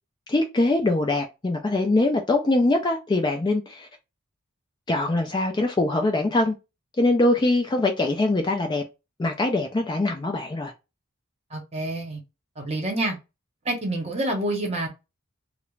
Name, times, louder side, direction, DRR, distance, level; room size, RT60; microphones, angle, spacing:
voice 1, 0.3-3.9 4.9-6.5 7.0-8.8 9.2-10.7, left 2 dB, 20° left, 0.3 m, -23 dB
voice 2, 11.5-12.2 12.6-13.2 13.6-14.9, right 1 dB, 30° right, 0.8 m, -27 dB
2.4 x 2.0 x 3.0 m
head